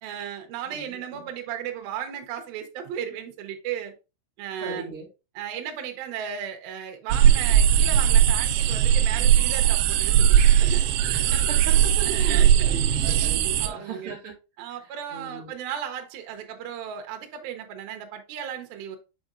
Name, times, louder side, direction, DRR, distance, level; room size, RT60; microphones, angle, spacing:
voice 1, 0.0-3.9 4.4-4.9 5.4-10.8 12.0-12.9 13.6-14.1 14.6-19.0, right 9 dB, 70° right, 2.5 m, -35 dB
voice 2, 0.7-1.3 4.6-5.1 10.7-14.3 14.8-15.5, right 4 dB, 50° right, 1.8 m, -39 dB
sound 1, 7.1-13.7, right 9 dB, 90° right, 2.8 m, -19 dB
7.3 x 5.1 x 2.5 m
omnidirectional pair, 4.9 m